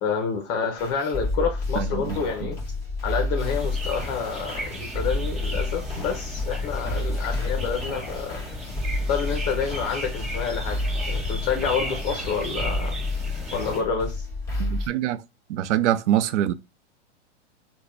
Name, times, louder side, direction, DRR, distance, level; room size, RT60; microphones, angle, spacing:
voice 1, 0.0-2.6 3.0-8.4 9.1-10.8 11.1-13.0 13.5-14.2, left 6 dB, 35° left, 0.7 m, -28 dB
sound 1, 0.8-14.9, left 2 dB, 10° left, 1.8 m, -30 dB
voice 2, 1.8-2.5 14.6-15.2 15.5-16.5, right 11 dB, 70° right, 0.5 m, -25 dB
sound 2, 3.4-13.8, left 1 dB, 20° right, 1.3 m, -35 dB
3.9 x 2.3 x 3.3 m
hypercardioid pair, 140°, 36 cm